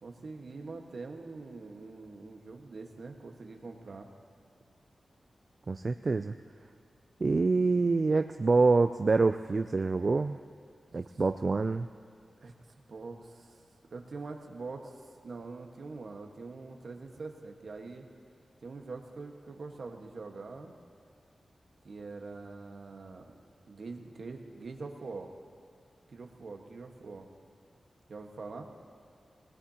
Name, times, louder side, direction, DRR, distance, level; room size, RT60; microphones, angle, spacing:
voice 1, 0.0-4.1 12.4-12.5 12.9-13.5 13.9-15.0 15.2-18.0 18.6-20.7 21.8-23.3 23.7-25.3 26.1-27.3 28.1-28.6, right 3 dB, 65° right, 3 dB, 1.4 m, -44 dB
voice 2, 5.7-6.3 7.2-10.4 10.9-11.9, right 3 dB, 45° right, 8 dB, 0.3 m, -26 dB
22.0 x 19.0 x 2.9 m, 2.3 s
wide cardioid pair, 110°, 0 cm